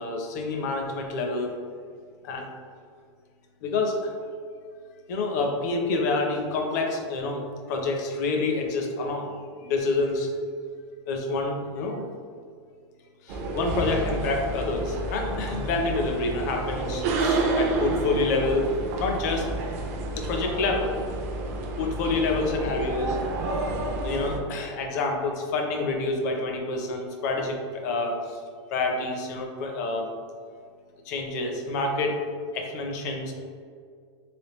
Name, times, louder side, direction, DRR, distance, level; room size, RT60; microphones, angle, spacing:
voice 1, 0.0-1.6 2.2-2.5 3.6-4.1 5.1-7.4 7.7-9.3 9.6-10.3 11.1-12.0 13.2-19.5 20.2-20.9 21.8-23.2 24.0-27.6 27.8-28.4 28.7-30.1 31.1-32.2 32.5-33.3, left 3 dB, 35° left, 2 dB, 0.5 m, -27 dB
sound 1, 13.3-24.4, right 2 dB, 30° right, 0.4 m, -30 dB
3.3 x 3.3 x 2.9 m, 2.1 s
supercardioid pair, 175°, 15 cm